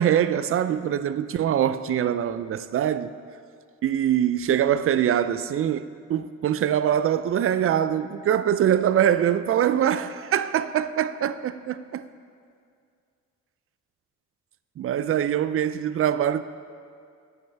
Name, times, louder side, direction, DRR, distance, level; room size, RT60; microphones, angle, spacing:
voice 1, 0.0-3.1 3.8-12.1 14.8-16.4, right 10 dB, 45° right, 0.4 m, -23 dB
10.5 x 9.1 x 3.4 m
cardioid pair, 90°, 30 cm